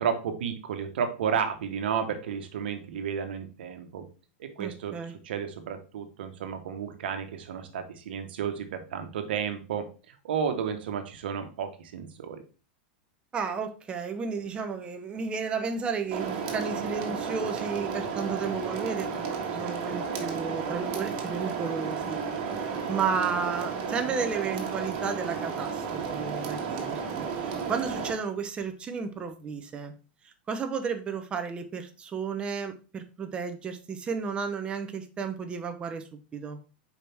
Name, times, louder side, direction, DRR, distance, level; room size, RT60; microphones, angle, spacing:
voice 1, 0.0-4.1 4.4-4.9 5.2-12.4, right 7 dB, 80° right, 7 dB, 1.2 m, -32 dB
voice 2, 4.6-5.2 13.3-22.2 22.9-29.9 30.5-36.6, right 5 dB, 20° right, 7 dB, 0.8 m, -33 dB
sound 1, 16.1-28.1, right 6 dB, 50° right, 1.6 m, -32 dB
5.7 x 4.8 x 3.5 m, 0.35 s
supercardioid pair, 145°, 5 cm